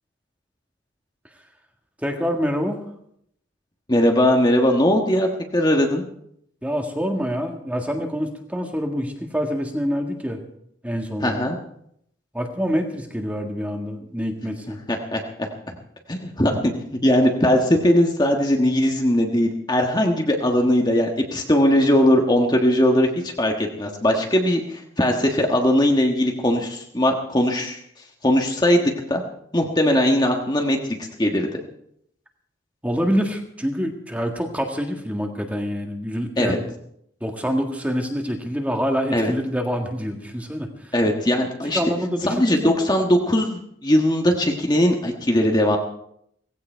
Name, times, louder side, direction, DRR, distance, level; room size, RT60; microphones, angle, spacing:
voice 1, 2.0-2.8 6.6-10.4 10.8-11.4 12.3-14.8 32.8-36.5 37.2-40.9 41.7-42.7, equal, 5° right, 3 dB, 1.7 m, -26 dB
voice 2, 3.9-6.0 11.2-11.6 14.9-15.5 16.1-16.7 17.0-27.8 28.2-29.2 29.5-30.8 31.2-31.6 36.4-36.6 39.1-39.3 40.9-41.9 42.2-45.8, left 1 dB, 20° left, 2 dB, 1.4 m, -20 dB
17.5 x 16.0 x 4.6 m, 0.71 s
head